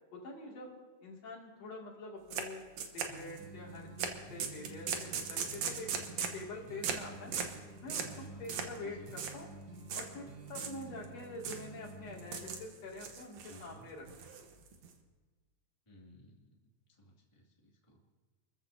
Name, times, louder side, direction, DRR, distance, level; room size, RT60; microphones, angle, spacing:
voice 1, 0.1-0.7 1.0-2.6 2.9-5.9 6.3-7.4 7.8-9.5 9.9-14.4, left 2 dB, 55° left, -3 dB, 3.7 m, -46 dB
sound 1, 2.3-2.5 2.8-3.5 4.0-4.1 4.4-6.4 6.8-7.0 7.3-7.6 7.9-8.2 8.5-8.8 9.1-9.3 9.9-10.1 10.5-11.1 11.4-11.7 12.2-12.7 13.0-13.6 14.1-14.9, right 6 dB, 60° right, 2.2 m, -38 dB
sound 2, 3.1-12.7, right 2 dB, 45° right, 1.9 m, -51 dB
voice 2, 8.0-8.4 8.8-9.1 13.4-13.9 15.9-16.5 17.0-18.0, left 1 dB, 10° left, -3 dB, 2.1 m, -55 dB
29.0 x 14.0 x 2.8 m, 1.4 s
omnidirectional pair, 3.7 m